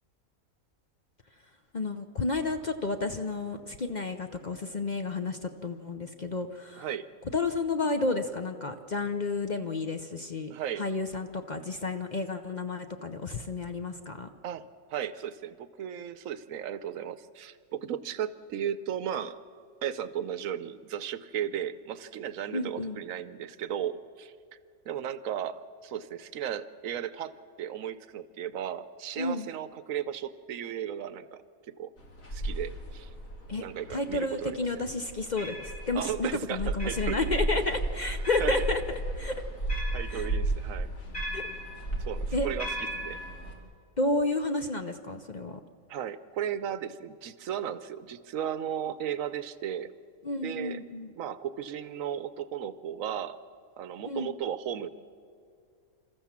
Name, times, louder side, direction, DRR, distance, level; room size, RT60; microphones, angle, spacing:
voice 1, 1.7-6.9 7.3-10.5 10.8-14.3 22.5-23.0 29.2-29.5 33.5-38.8 39.2-39.3 40.1-40.3 41.3-41.5 42.3-42.5 44.0-45.6 50.2-51.1 54.0-54.3, left 3 dB, 40° left, 7 dB, 0.7 m, -31 dB
voice 2, 6.8-7.1 10.5-10.8 14.4-14.6 14.9-19.4 19.8-24.3 24.9-27.3 27.6-31.9 32.3-33.1 33.6-34.6 35.9-37.5 38.4-38.5 39.9-40.9 42.0-43.2 45.9-49.9 50.4-50.8 51.2-53.4 53.8-54.9, right 9 dB, 75° right, 14 dB, 1.1 m, -35 dB
sound 1, 32.0-43.5, right 1 dB, 70° left, 2.8 m, -34 dB
27.5 x 14.0 x 7.3 m, 2.3 s
omnidirectional pair, 1.4 m